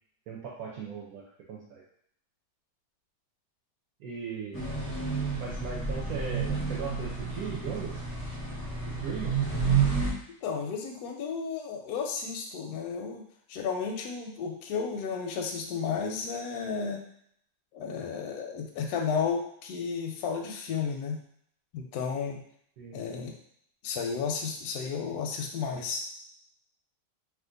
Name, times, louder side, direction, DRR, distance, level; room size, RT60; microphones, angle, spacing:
voice 1, 0.3-1.2 1.5-1.8 4.0-4.7 5.4-7.9 9.0-9.3 22.8-23.0, right 6 dB, 70° right, -4 dB, 0.9 m, -37 dB
sound 1, 4.5-10.1, right 5 dB, 20° left, 0.3 m, -30 dB
voice 2, 10.4-13.2 13.5-17.0 17.7-21.2 21.7-22.4 22.9-23.3 23.8-26.0, left 6 dB, 70° left, 2 dB, 0.9 m, -33 dB
2.8 x 2.4 x 3.7 m, 0.67 s
omnidirectional pair, 1.9 m